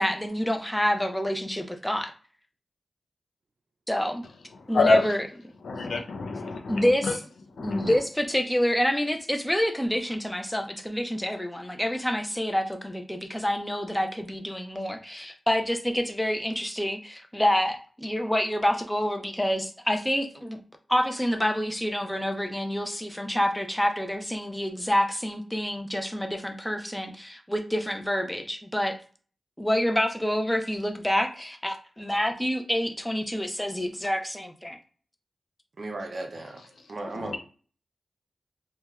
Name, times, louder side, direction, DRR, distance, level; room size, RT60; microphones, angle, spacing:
voice 1, 0.0-2.1 3.9-4.2 4.7-5.3 6.7-7.2 7.6-20.6 20.9-29.0 29.6-34.8, equal, 5° left, 0.4 m, -27 dB
voice 2, 4.7-5.1 5.6-7.1 7.6-7.9 37.1-37.4, left 3 dB, 90° left, 0.5 m, -27 dB
voice 3, 35.8-36.6 36.9-37.4, right 2 dB, 55° right, 0.5 m, -35 dB
2.9 x 2.1 x 2.3 m
wide cardioid pair, 105°, 0 cm